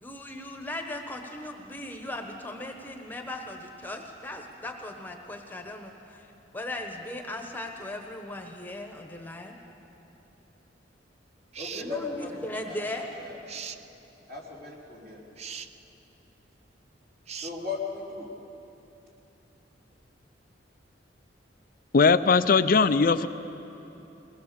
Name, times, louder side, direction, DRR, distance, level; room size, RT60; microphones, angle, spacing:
voice 1, 0.0-6.3 6.5-9.6 11.7-13.1, left 1 dB, 10° left, 3 dB, 1.2 m, -38 dB
sound 1, 11.5-11.9 13.5-13.8 15.4-15.7 17.3-17.6, right 7 dB, 35° right, 0.5 m, -39 dB
voice 2, 11.6-13.4 14.3-15.2 17.4-18.3, left 4 dB, 55° right, -3 dB, 4.1 m, -37 dB
voice 3, 21.9-23.3, left 4 dB, 50° left, 11 dB, 0.5 m, -20 dB
22.0 x 18.5 x 6.9 m, 3.0 s
head